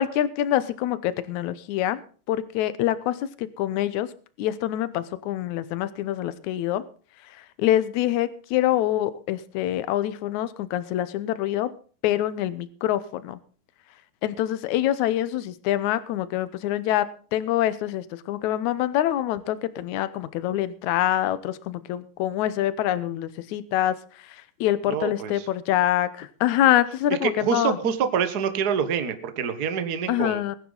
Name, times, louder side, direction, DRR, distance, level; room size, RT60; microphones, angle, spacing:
voice 1, 0.0-2.0 2.3-4.1 4.4-6.8 7.6-11.7 12.0-13.4 14.2-17.1 17.3-24.0 24.6-27.8 30.1-30.6, left 12 dB, 70° left, 15 dB, 2.1 m, -25 dB
voice 2, 24.9-25.5 27.2-30.4, right 7 dB, 80° right, 9 dB, 0.8 m, -26 dB
21.0 x 10.0 x 4.0 m, 0.40 s
omnidirectional pair, 3.9 m